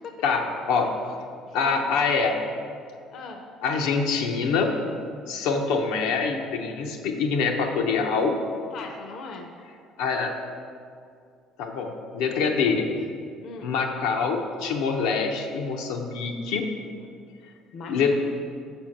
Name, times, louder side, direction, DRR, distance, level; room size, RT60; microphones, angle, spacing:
voice 1, 0.2-0.9 1.5-2.3 3.6-4.7 5.3-8.3 10.0-10.3 11.6-12.9 13.6-16.6 17.9-18.1, left 5 dB, 85° left, 2 dB, 0.7 m, -25 dB
voice 2, 1.5-2.1 3.1-3.4 8.7-9.5 13.4-13.7 17.7-18.1, left 4 dB, 50° left, 4 dB, 0.6 m, -38 dB
6.3 x 4.4 x 6.5 m, 2.2 s
cardioid pair, 135°, 0 cm